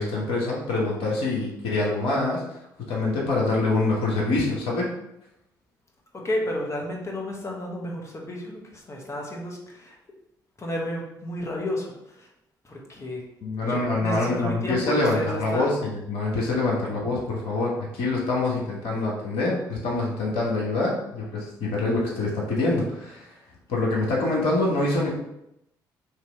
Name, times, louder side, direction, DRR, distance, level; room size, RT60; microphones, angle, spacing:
voice 1, 0.0-2.4 2.8-4.9 13.4-23.3 23.7-25.1, left 2 dB, 65° left, -4 dB, 1.2 m, -25 dB
voice 2, 6.1-10.0 10.6-12.3 12.6-13.2 13.7-15.7 17.0-17.2, left 1 dB, 30° left, -1 dB, 1.4 m, -32 dB
3.3 x 3.0 x 4.5 m, 0.83 s
hypercardioid pair, 45°, 10 cm